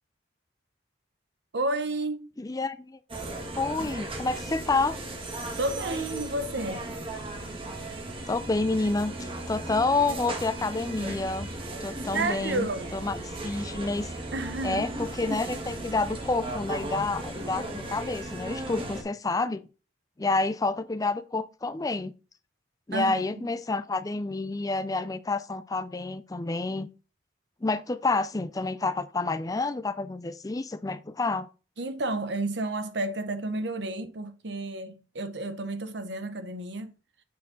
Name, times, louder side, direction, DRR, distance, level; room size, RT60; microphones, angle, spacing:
voice 1, 1.5-2.3 5.6-6.8 12.1-12.9 14.3-14.8 22.9-23.5 31.8-36.9, right 2 dB, 65° right, 1.0 m, -31 dB
voice 2, 2.4-3.0 3.6-5.0 8.3-11.5 11.8-12.7 12.9-13.2 13.4-14.1 14.6-19.6 20.2-22.1 22.9-26.9 27.6-31.5, left 3 dB, 20° left, 0.4 m, -29 dB
sound 1, 3.1-19.0, right 1 dB, 30° right, 1.5 m, -36 dB
8.3 x 4.9 x 3.8 m
head